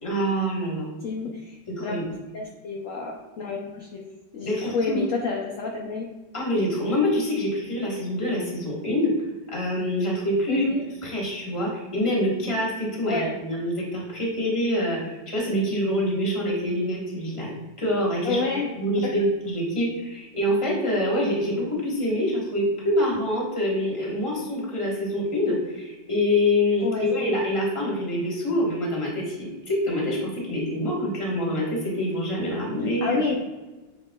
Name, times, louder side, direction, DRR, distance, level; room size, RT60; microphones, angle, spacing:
voice 1, 0.0-0.9 1.7-2.0 4.4-5.0 6.3-9.1 9.5-10.6 11.0-18.5 18.8-33.2, left 1 dB, 20° left, -3 dB, 0.9 m, -26 dB
voice 2, 1.0-2.0 2.3-4.0 4.3-6.0 10.5-10.8 13.0-13.3 18.2-18.7 19.0-19.2 26.8-27.3 33.0-33.3, left 4 dB, 65° left, -1 dB, 0.8 m, -29 dB
7.2 x 3.1 x 2.2 m, 1.2 s
omnidirectional pair, 1.9 m